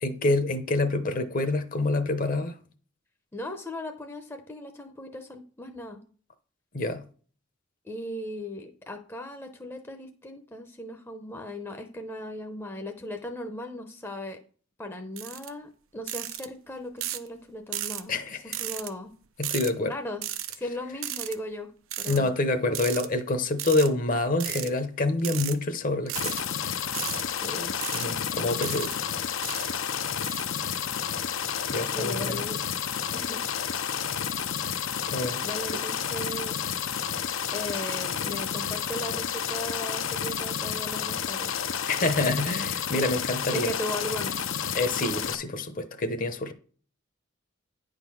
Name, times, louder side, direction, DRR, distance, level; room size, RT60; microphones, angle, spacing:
voice 1, 0.0-2.6 6.7-7.0 18.1-18.5 19.4-19.9 22.1-26.4 27.9-28.9 31.7-32.5 35.1-35.4 41.9-43.7 44.7-46.5, left 2 dB, 40° left, 0.8 m, -27 dB
voice 2, 3.3-6.0 7.8-14.4 14.8-19.1 19.9-20.2 20.5-21.7 22.0-22.3 27.4-27.7 31.9-32.6 33.1-33.5 35.4-36.6 37.5-41.6 43.5-44.4, left 1 dB, 10° left, 0.7 m, -37 dB
sound 1, 15.2-15.5 16.1-16.5 17.0-17.3 17.7-18.0 18.5-18.9 19.4-19.7 20.2-20.6 21.0-21.3 21.9-22.2 22.7-23.1 23.6-23.9 24.4-24.7 25.2-25.5 26.1-26.4 26.9-27.2 27.8-28.1 28.6-28.9 29.4-29.7 30.2-30.4, right 12 dB, 85° right, 0.6 m, -34 dB
sound 2, 26.1-45.3, left 8 dB, 70° left, 0.6 m, -31 dB
9.7 x 3.8 x 6.3 m
head